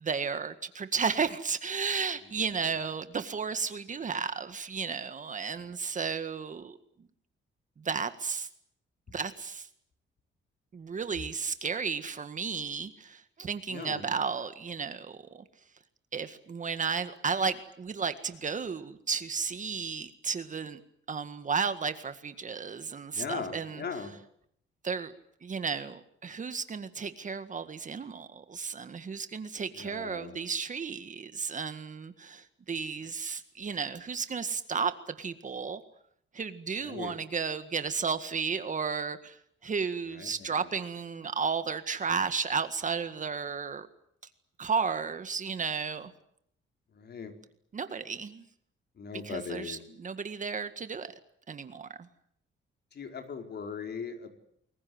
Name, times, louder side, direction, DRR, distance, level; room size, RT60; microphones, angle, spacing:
voice 1, 0.0-6.7 7.8-8.5 9.1-9.7 10.7-15.4 16.1-20.8 21.1-23.8 24.8-25.1 25.4-35.8 36.3-39.4 39.6-43.9 44.6-46.1 47.7-48.4 49.2-51.1 51.5-51.9, right 5 dB, 35° right, 10 dB, 1.8 m, -33 dB
voice 2, 13.7-14.0 23.1-24.1 29.7-30.4 36.8-37.1 40.1-40.7 46.9-47.3 49.0-49.8 52.9-54.3, left 6 dB, 50° left, 6 dB, 4.7 m, -39 dB
30.0 x 21.5 x 8.0 m, 0.71 s
cardioid pair, 130°, 21 cm